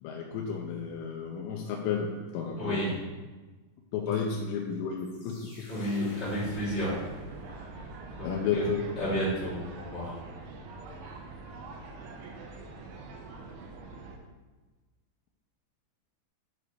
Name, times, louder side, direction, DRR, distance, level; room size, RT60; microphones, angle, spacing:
voice 1, 0.0-3.0 3.9-5.9 8.2-8.9, left 6 dB, 80° left, 0 dB, 3.0 m, -32 dB
voice 2, 2.6-2.9 5.7-7.0 8.2-8.7 9.0-10.2, equal, 20° left, -8 dB, 2.2 m, -31 dB
sound 1, 5.0-7.8, left 2 dB, 45° left, 3.2 m, -51 dB
sound 2, 6.4-14.2, right 3 dB, 75° right, 2.5 m, -44 dB
9.6 x 5.3 x 4.7 m, 1.3 s
omnidirectional pair, 5.8 m